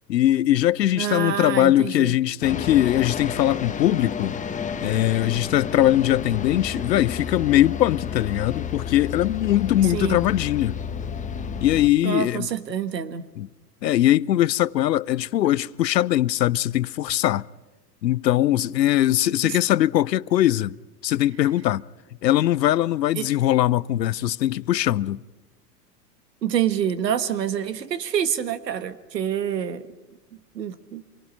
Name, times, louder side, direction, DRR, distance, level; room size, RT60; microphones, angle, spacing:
voice 1, 0.1-4.4 4.8-10.8 11.6-12.5 13.4-13.5 13.8-17.5 18.0-20.8 21.0-21.8 22.2-25.2, left 13 dB, 80° left, 0.6 m, -21 dB
voice 2, 0.9-2.1 9.8-10.3 12.0-13.3 19.4-19.5 23.1-23.3 26.4-29.9 30.5-31.0, right 9 dB, 75° right, 1.4 m, -27 dB
sound 1, 2.4-11.9, left 7 dB, 15° left, 1.0 m, -31 dB
26.5 x 23.5 x 5.4 m
figure-of-eight pair, 90°, 50 cm